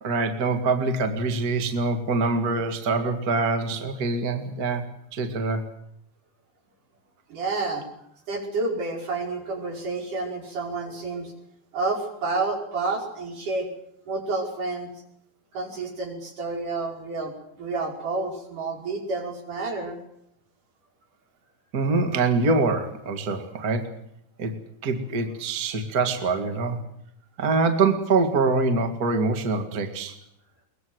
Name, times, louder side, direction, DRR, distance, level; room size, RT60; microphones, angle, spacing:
voice 1, 0.0-5.7 21.7-23.9 24.4-24.5 24.8-26.8 27.4-30.1, right 3 dB, 35° right, 6 dB, 1.7 m, -24 dB
voice 2, 7.3-7.9 8.3-11.3 11.7-13.7 14.1-14.9 15.5-17.3 17.6-20.0, right 3 dB, 50° right, 2 dB, 6.7 m, -29 dB
22.5 x 21.5 x 7.9 m, 0.75 s
omnidirectional pair, 4.7 m